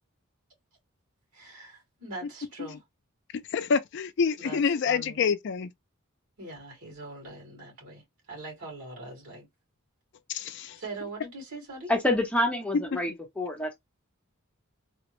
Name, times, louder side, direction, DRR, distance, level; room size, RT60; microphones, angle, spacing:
voice 1, 1.3-2.8 4.4-5.2 6.4-8.0 8.3-9.5 10.8-11.9, right 2 dB, 80° right, 2.1 m, -42 dB
voice 2, 3.3-5.7 10.3-10.8 12.7-13.0, left 6 dB, 55° left, 0.4 m, -27 dB
voice 3, 11.9-13.7, left 1 dB, 5° left, 0.7 m, -27 dB
3.4 x 2.0 x 3.0 m
head